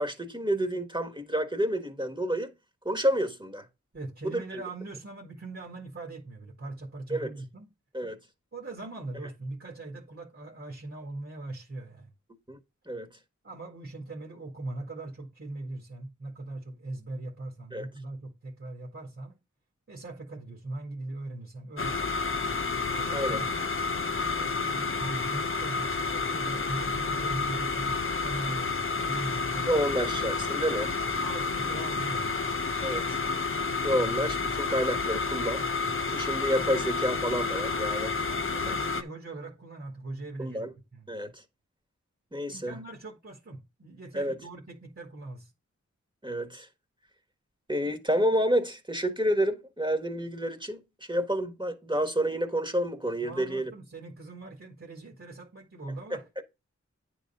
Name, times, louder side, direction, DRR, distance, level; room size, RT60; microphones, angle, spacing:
voice 1, 0.0-2.5 2.8-3.6 4.2-4.6 7.1-7.3 7.9-8.2 12.5-12.6 12.9-13.1 17.7-17.9 23.1-23.4 29.7-31.0 32.8-33.2 33.8-35.6 36.1-38.2 40.4-40.7 41.1-41.4 42.3-42.8 44.1-44.3 46.2-46.7 47.7-53.7 56.1-56.4, equal, 15° right, 1.6 m, -29 dB
voice 2, 3.9-7.7 8.5-12.1 13.4-19.4 19.9-22.0 22.8-23.6 24.3-29.8 31.2-32.4 38.3-41.1 42.5-45.5 53.2-56.2, right 2 dB, 45° right, 1.9 m, -40 dB
sound 1, 21.8-39.0, left 4 dB, 45° left, 0.8 m, -30 dB
9.7 x 3.9 x 5.5 m
wide cardioid pair, 60°, 29 cm